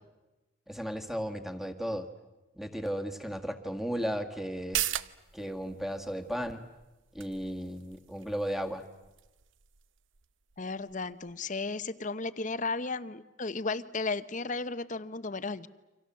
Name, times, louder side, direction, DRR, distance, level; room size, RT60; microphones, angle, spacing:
voice 1, 0.7-2.1 2.6-4.9 5.3-6.6 7.1-8.9, equal, ahead, 7 dB, 1.9 m, -35 dB
sound 1, 4.5-11.7 12.0-12.1, right 12 dB, 80° right, 0.8 m, -40 dB
voice 2, 10.6-15.7, left 3 dB, 40° left, 14 dB, 0.9 m, -34 dB
29.5 x 25.5 x 7.6 m, 1.1 s
head